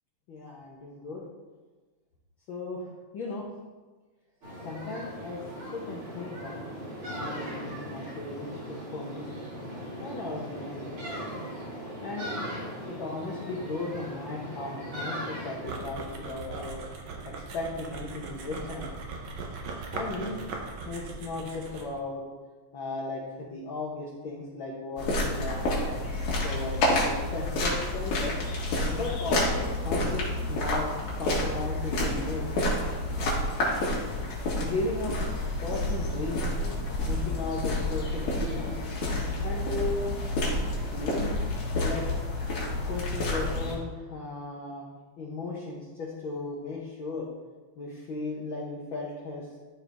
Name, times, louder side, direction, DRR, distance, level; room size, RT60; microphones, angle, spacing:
voice 1, 0.3-1.2 2.5-3.4 4.6-5.4 5.7-6.7 7.0-9.4 10.0-11.0 12.0-12.3 12.9-16.8 17.3-18.9 19.9-20.4 20.9-22.2 22.7-26.0 26.4-28.3 28.9-30.9 31.2-32.4 34.6-36.5 37.0-38.8 39.4-40.1 40.9-41.4 41.7-42.0 42.8-44.8 45.2-47.2 47.8-49.4, left 3 dB, 60° left, -4 dB, 1.4 m, -36 dB
sound 1, 4.4-15.8, equal, 40° right, 2.8 m, -38 dB
sound 2, 15.7-22.0, right 3 dB, 70° right, 1.2 m, -39 dB
sound 3, 25.0-43.8, left 1 dB, 75° left, 3.1 m, -29 dB
12.5 x 4.6 x 3.5 m, 1.3 s
omnidirectional pair, 3.4 m